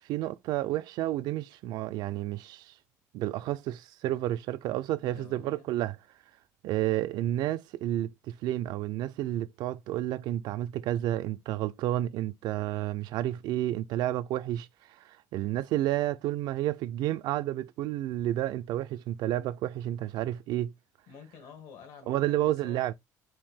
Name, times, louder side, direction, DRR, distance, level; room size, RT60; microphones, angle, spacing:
voice 1, 0.1-2.7 3.1-6.0 6.6-14.7 15.0-20.7 22.1-22.9, right 14 dB, 75° right, 0.4 m, -31 dB
voice 2, 5.0-5.7 6.7-6.8 21.1-22.9, left 6 dB, 80° left, 1.7 m, -50 dB
4.4 x 2.7 x 3.6 m
cardioid pair, 160°, 7 cm